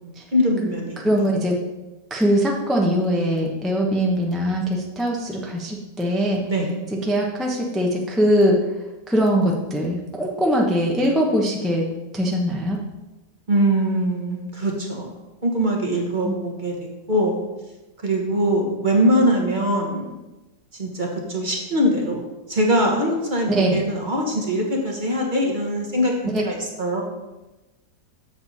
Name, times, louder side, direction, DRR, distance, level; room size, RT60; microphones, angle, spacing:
voice 1, 0.0-1.1 6.5-6.7 13.5-15.1 15.4-16.7 17.1-17.4 18.0-20.1 20.8-22.2 22.5-27.0, equal, 30° right, 0 dB, 1.2 m, -22 dB
voice 2, 1.0-1.6 2.1-6.4 7.0-8.6 9.1-11.8 12.1-12.8 16.2-16.3 23.5-23.8 26.3-26.4, equal, ahead, -2 dB, 0.6 m, -21 dB
7.8 x 6.8 x 4.2 m, 1.1 s
omnidirectional pair, 1.9 m